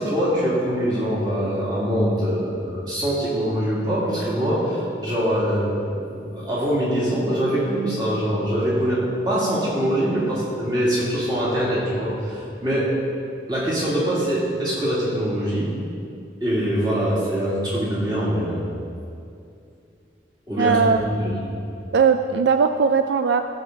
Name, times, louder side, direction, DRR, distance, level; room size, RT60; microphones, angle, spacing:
voice 1, 0.0-12.9 13.5-15.7 16.4-18.7 20.5-21.3, equal, 25° right, -7 dB, 2.6 m, -23 dB
voice 2, 20.6-21.0 21.9-23.4, right 5 dB, 70° right, 8 dB, 0.3 m, -19 dB
15.0 x 6.9 x 3.9 m, 2.6 s
head